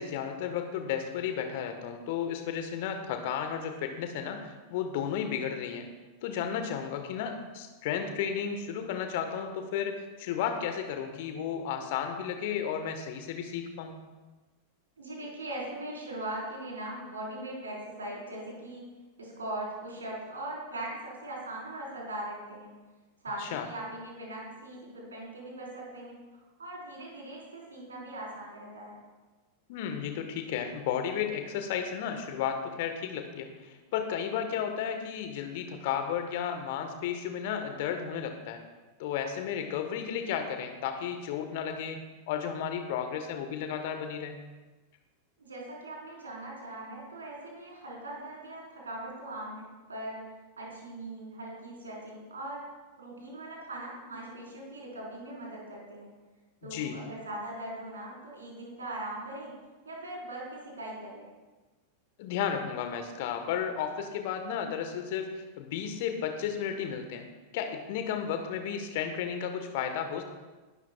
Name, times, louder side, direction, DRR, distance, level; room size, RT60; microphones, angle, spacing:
voice 1, 0.0-5.9 6.2-13.9 23.4-23.7 29.7-38.6 39.0-44.4 56.6-57.0 62.2-67.3 67.5-70.2, left 8 dB, 50° left, 7 dB, 1.4 m, -33 dB
voice 2, 15.0-18.9 19.2-22.7 23.2-26.2 26.6-29.0 45.4-50.2 50.6-52.6 53.0-56.1 56.6-59.5 59.8-61.3, right 1 dB, 70° right, -3 dB, 4.5 m, -40 dB
19.0 x 12.5 x 2.4 m, 1.2 s
figure-of-eight pair, 90°, 0 cm